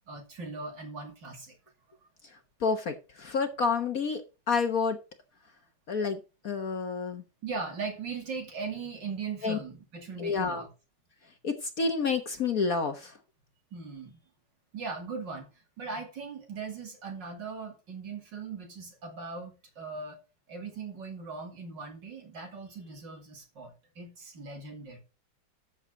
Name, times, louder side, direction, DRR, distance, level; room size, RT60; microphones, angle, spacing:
voice 1, 0.1-1.5 7.4-10.7 13.7-14.2 14.7-15.5 15.8-20.2 20.5-25.0, right 4 dB, 60° right, 3.2 m, -39 dB
voice 2, 2.6-5.0 5.9-6.2 6.4-7.2 9.4-9.6 10.2-10.6 11.4-13.2, left 4 dB, 50° left, 1.4 m, -29 dB
13.0 x 7.4 x 3.9 m
omnidirectional pair, 2.3 m